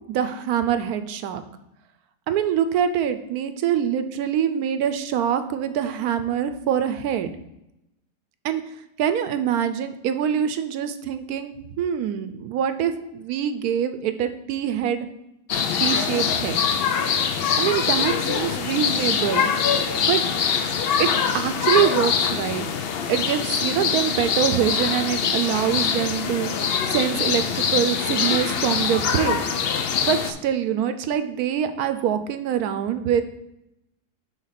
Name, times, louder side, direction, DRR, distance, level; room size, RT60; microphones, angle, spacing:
voice 1, 0.1-1.4 2.3-7.3 8.4-8.6 9.0-15.1 15.8-16.6 17.6-19.5 20.0-20.2 21.0-21.1 21.3-22.7 23.1-29.4 30.0-33.2, right 9 dB, 75° right, 10 dB, 1.0 m, -24 dB
sound 1, 15.5-30.3, left 7 dB, 85° left, 0.5 m, -23 dB
6.4 x 3.8 x 5.6 m, 0.86 s
omnidirectional pair, 1.7 m